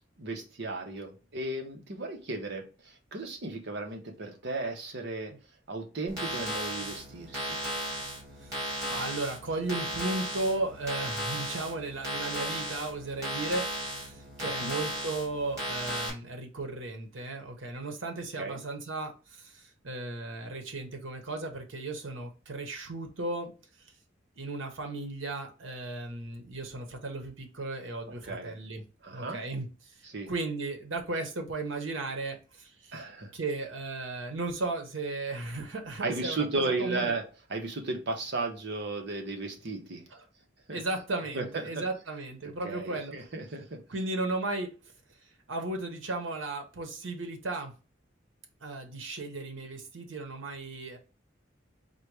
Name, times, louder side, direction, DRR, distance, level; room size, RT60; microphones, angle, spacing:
voice 1, 0.2-5.3 5.7-7.6 14.6-14.8 18.4-18.6 28.2-28.6 29.0-29.4 30.0-30.3 32.9-33.3 36.0-37.2 37.5-40.0 40.7-40.8 41.3-41.8 42.4-43.8, right 3 dB, 60° right, 0.9 m, -35 dB
sound 1, 6.1-16.1, equal, 20° right, 2.4 m, -35 dB
voice 2, 8.9-23.5 24.4-28.8 29.1-29.7 30.3-33.0 33.3-37.1 40.1-40.2 40.7-43.1 43.9-44.7 45.5-47.7 48.6-51.0, right 2 dB, 80° right, 1.0 m, -35 dB
4.1 x 2.3 x 4.6 m
head